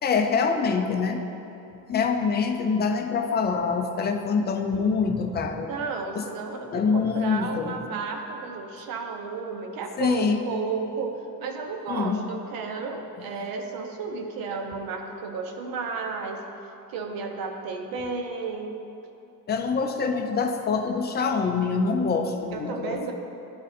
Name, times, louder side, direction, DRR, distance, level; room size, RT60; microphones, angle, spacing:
voice 1, 0.0-1.2 1.9-5.7 6.1-6.2 6.7-7.7 10.0-10.4 11.9-12.2 19.5-23.1, left 5 dB, 25° left, 4 dB, 0.5 m, -25 dB
voice 2, 5.7-16.4 16.9-18.8 22.5-23.1, right 4 dB, 70° right, 4 dB, 0.9 m, -33 dB
11.0 x 3.8 x 4.2 m, 2.9 s
cardioid pair, 140°, 36 cm